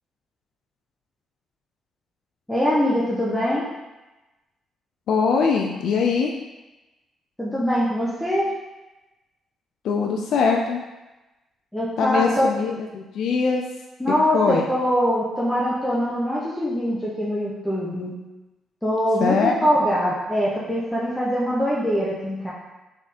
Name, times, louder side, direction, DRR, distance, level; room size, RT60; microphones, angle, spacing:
voice 1, 2.5-3.7 7.4-8.5 11.7-12.5 14.0-18.1 18.8-22.5, equal, 5° left, -7 dB, 0.9 m, -23 dB
voice 2, 5.1-6.3 9.8-10.8 12.0-13.6 14.3-14.7 19.2-19.7, left 5 dB, 75° left, 1 dB, 0.4 m, -22 dB
3.6 x 3.5 x 4.2 m, 1.1 s
cardioid pair, 90°, 0 cm